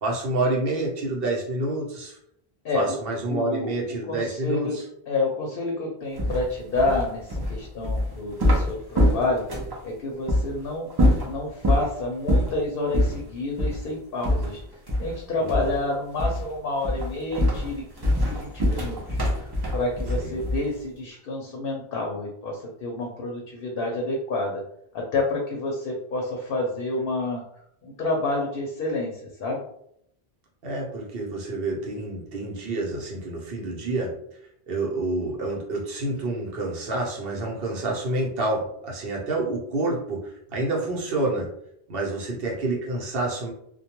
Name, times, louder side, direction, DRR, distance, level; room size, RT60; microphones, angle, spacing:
voice 1, 0.0-2.2 2.7-4.8 15.4-15.7 20.1-20.3 30.6-34.1 34.7-41.5 41.9-43.5, right 2 dB, 65° right, -2 dB, 0.9 m, -28 dB
voice 2, 2.6-2.9 3.3-3.7 4.0-4.8 5.1-14.6 15.0-24.6 24.9-27.4 27.8-29.6, left 2 dB, 65° left, 0 dB, 0.7 m, -29 dB
sound 1, 6.2-9.8 10.3-10.5 10.9-11.9 12.3-12.6 12.9-13.2 13.6-13.8 14.2-15.2 15.5-15.8 16.2-16.5 16.8-20.8, left 1 dB, 35° right, 0.4 m, -24 dB
2.2 x 2.2 x 2.8 m, 0.73 s
omnidirectional pair, 1.1 m